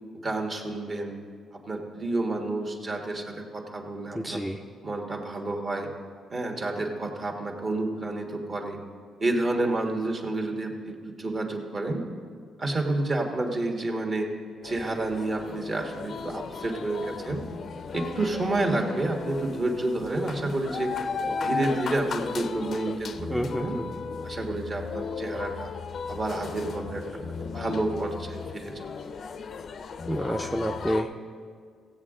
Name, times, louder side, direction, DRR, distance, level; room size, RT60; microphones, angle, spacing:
voice 1, 0.2-1.2 1.5-4.4 4.8-5.9 6.3-8.8 9.2-12.0 12.6-14.3 14.6-17.4 17.9-20.9 21.3-23.8 24.2-25.7 26.1-28.9, right 2 dB, 40° right, 2 dB, 1.5 m, -30 dB
voice 2, 4.1-4.6 23.3-23.9 30.1-31.1, equal, 5° right, 2 dB, 0.5 m, -29 dB
sound 1, 14.6-31.0, left 5 dB, 55° left, 0.5 m, -35 dB
15.5 x 8.0 x 3.8 m, 2.1 s
cardioid pair, 90°, 0 cm